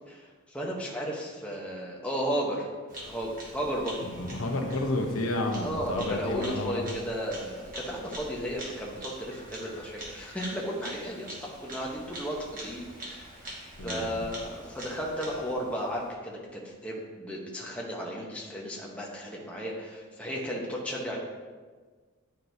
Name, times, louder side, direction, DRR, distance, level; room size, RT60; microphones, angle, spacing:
voice 1, 0.1-2.7 3.1-4.0 4.4-4.6 5.6-13.4 13.8-21.2, equal, 5° left, -3 dB, 0.8 m, -34 dB
Bird vocalization bird call bird song, 2.9-16.1, right 1 dB, 40° right, 1.2 m, -44 dB
voice 2, 4.0-6.9 13.8-14.1, left 2 dB, 80° left, 2 dB, 0.8 m, -31 dB
9.4 x 4.5 x 2.7 m, 1.4 s
head